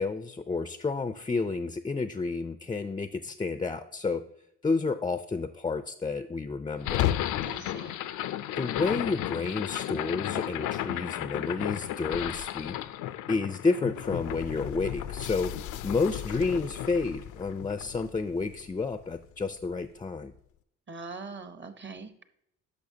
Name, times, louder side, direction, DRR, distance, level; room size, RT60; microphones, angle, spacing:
voice 1, 0.0-4.2 4.6-7.1 8.6-12.8 13.3-15.5 15.8-20.3, left 4 dB, 15° left, 10 dB, 0.3 m, -30 dB
sound 1, 6.8-19.0, left 12 dB, 85° left, 0.4 m, -33 dB
voice 2, 7.4-8.0 20.9-22.2, right 4 dB, 40° right, 9 dB, 0.9 m, -42 dB
10.5 x 6.2 x 2.7 m, 0.75 s
cardioid pair, 80°, 30 cm